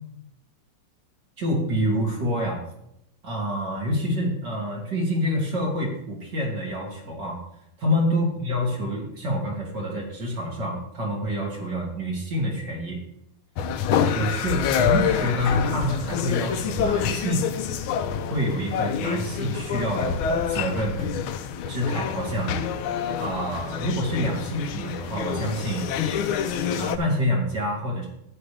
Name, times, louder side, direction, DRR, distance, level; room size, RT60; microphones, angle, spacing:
voice 1, 1.4-2.6 3.2-7.4 7.8-13.0 14.0-17.5 18.3-21.1 21.7-22.6 23.2-25.9 26.8-28.1, equal, 50° right, -2 dB, 3.5 m, -27 dB
sound 1, 13.6-27.0, left 7 dB, 75° left, 1.5 m, -27 dB
11.5 x 9.3 x 3.4 m, 0.78 s
omnidirectional pair, 2.4 m